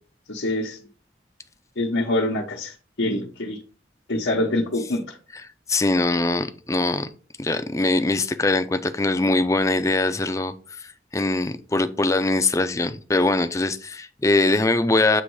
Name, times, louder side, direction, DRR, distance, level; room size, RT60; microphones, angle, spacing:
voice 1, 0.3-0.8 1.8-3.6 4.1-5.2, left 1 dB, 85° left, -3 dB, 1.0 m, -25 dB
voice 2, 5.7-7.1 7.4-10.9 11.1-15.2, left 2 dB, 15° left, 11 dB, 0.4 m, -22 dB
8.4 x 3.1 x 4.7 m, 0.39 s
head